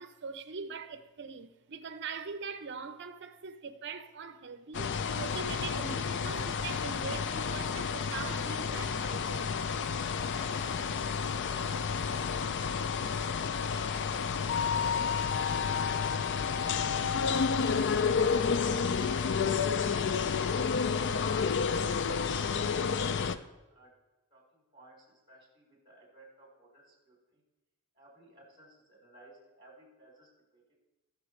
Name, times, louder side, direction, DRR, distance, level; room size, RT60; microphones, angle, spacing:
voice 1, 0.0-9.4, right 5 dB, 55° right, 0.7 m, -42 dB
sound 1, 4.7-23.4, left 6 dB, 55° left, 0.5 m, -30 dB
voice 2, 10.1-12.6 12.9-15.9 16.4-17.4 17.9-22.0 22.4-23.9 24.3-27.4 27.9-30.6, right 1 dB, 25° right, 4.1 m, -57 dB
20.5 x 6.9 x 3.2 m
head